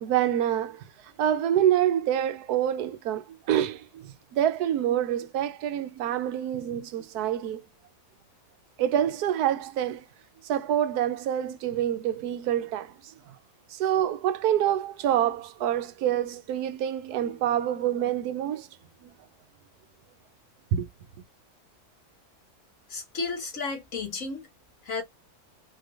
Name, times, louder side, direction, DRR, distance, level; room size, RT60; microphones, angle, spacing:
voice 1, 0.0-7.6 8.8-10.0 10.4-13.3 13.7-18.7 19.0-19.1 20.7-20.9, right 10 dB, 80° right, 1.1 m, -27 dB
voice 2, 22.9-24.5 24.9-25.0, left 4 dB, 55° left, 1.8 m, -33 dB
4.4 x 3.2 x 2.4 m
omnidirectional pair, 1.7 m